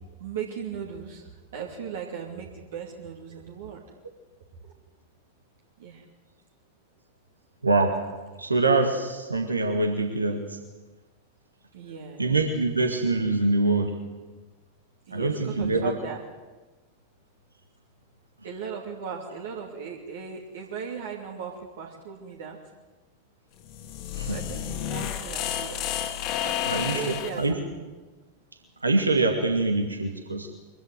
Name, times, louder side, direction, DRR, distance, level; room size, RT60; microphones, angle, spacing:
voice 1, 0.0-3.8 4.6-4.7 5.8-6.0 11.7-12.3 15.1-16.2 18.4-22.6 24.3-25.9 26.4-27.8, right 6 dB, 60° right, 0 dB, 2.7 m, -38 dB
voice 2, 7.6-7.9 8.4-10.6 12.2-14.0 15.1-16.0 24.1-24.4 26.7-27.5 28.8-30.5, right 3 dB, 80° right, 4 dB, 2.1 m, -24 dB
sound 1, 23.6-27.4, left 10 dB, 40° left, 2.1 m, -31 dB
23.5 x 15.5 x 9.3 m, 1.2 s
figure-of-eight pair, 90°, 0 cm